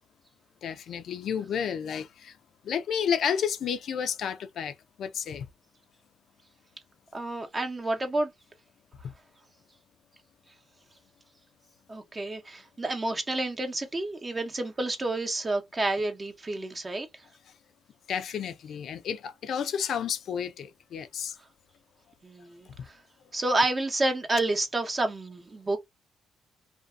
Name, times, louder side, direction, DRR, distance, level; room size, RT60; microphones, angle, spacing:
voice 1, 0.6-2.3 2.6-5.5 18.1-21.4, left 7 dB, 65° left, 0.4 m, -31 dB
voice 2, 7.1-8.3 11.9-17.1 22.2-23.0 23.3-25.8, right 2 dB, 25° right, 0.8 m, -29 dB
2.6 x 2.4 x 2.3 m
cardioid pair, 90°, 0 cm